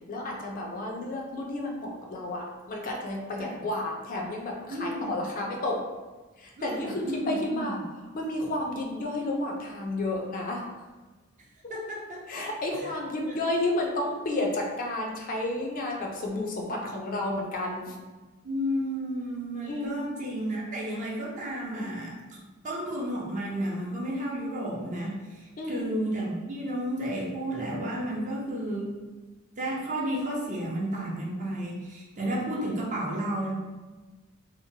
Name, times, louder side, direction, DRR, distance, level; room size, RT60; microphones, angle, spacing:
voice 1, 0.1-5.8 6.4-7.8 8.1-10.6 12.3-17.9 19.6-20.0 25.6-25.9, left 1 dB, 45° left, 0 dB, 0.5 m, -31 dB
voice 2, 4.7-5.2 6.6-7.8 11.7-12.2 12.8-12.9 18.4-22.4 22.6-29.0 29.6-33.5, right 1 dB, 40° right, -3 dB, 0.6 m, -32 dB
2.8 x 2.1 x 2.7 m, 1.2 s
head